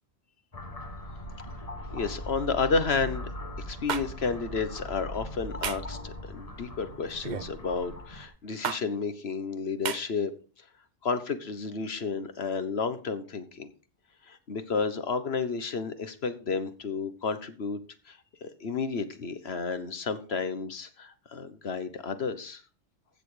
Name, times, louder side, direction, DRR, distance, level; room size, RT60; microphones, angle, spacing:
sound 1, 0.5-8.3, left 1 dB, 30° left, 1.6 m, -40 dB
voice 1, 1.9-3.3 3.7-10.3 11.0-13.7 14.3-17.8 18.1-22.6, left 4 dB, 65° left, 11 dB, 1.4 m, -31 dB
sound 2, 3.9-4.0 5.6-5.9 7.2-7.5 8.6-8.8 9.8-10.0, right 7 dB, 45° right, 0.7 m, -31 dB
15.0 x 6.8 x 5.0 m, 0.37 s
omnidirectional pair, 1.2 m